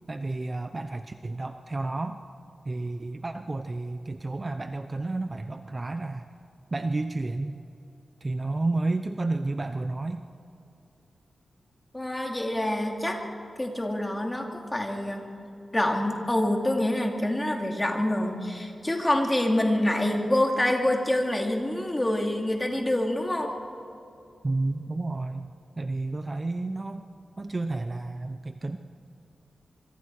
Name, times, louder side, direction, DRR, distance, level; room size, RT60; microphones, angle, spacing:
voice 1, 0.1-2.2 2.6-6.3 6.7-7.6 8.2-10.2 24.4-25.5 25.8-27.1 27.4-28.8, right 2 dB, 25° right, 7 dB, 0.7 m, -31 dB
voice 2, 11.9-13.2 13.6-15.3 15.7-23.5, left 1 dB, 15° left, 1 dB, 2.7 m, -26 dB
26.0 x 23.5 x 4.8 m, 2.8 s
wide cardioid pair, 155°, 0 cm